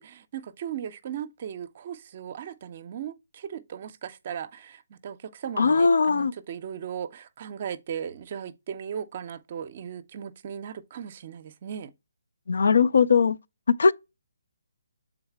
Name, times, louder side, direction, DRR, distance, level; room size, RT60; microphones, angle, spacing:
voice 1, 0.0-11.9, right 8 dB, 40° right, 0.5 m, -37 dB
voice 2, 5.6-6.3 12.5-13.4 13.7-13.9, left 5 dB, 70° left, 0.4 m, -20 dB
7.0 x 3.9 x 3.4 m
figure-of-eight pair, 150°, 0 cm